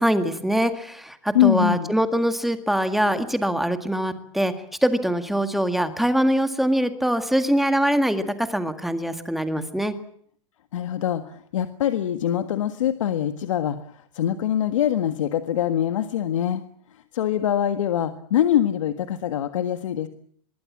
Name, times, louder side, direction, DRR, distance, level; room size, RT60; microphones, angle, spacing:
voice 1, 0.0-4.5 4.8-8.2 8.5-9.9, equal, ahead, 8 dB, 1.9 m, -23 dB
voice 2, 1.3-2.0 9.5-9.7 10.7-13.8 14.1-16.6 17.1-20.1, left 11 dB, 80° left, 9 dB, 1.7 m, -23 dB
24.5 x 22.5 x 7.4 m, 0.62 s
supercardioid pair, 150°, 16 cm